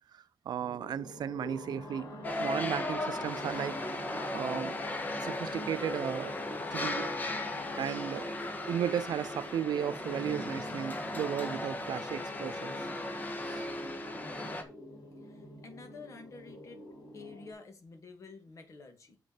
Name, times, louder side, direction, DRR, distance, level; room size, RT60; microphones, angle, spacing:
voice 1, 0.0-3.8 4.3-4.8 5.2-6.4 6.7-7.1 7.8-8.3 8.7-12.8 13.4-13.7, right 9 dB, 85° right, 0.4 m, -35 dB
sound 1, 0.6-17.5, left 1 dB, 80° left, 4.0 m, -48 dB
sound 2, 2.2-14.6, left 2 dB, 25° left, 1.3 m, -36 dB
voice 2, 15.2-16.8 17.1-19.2, left 4 dB, 50° left, 2.2 m, -50 dB
7.5 x 6.4 x 4.8 m
wide cardioid pair, 170°, 7 cm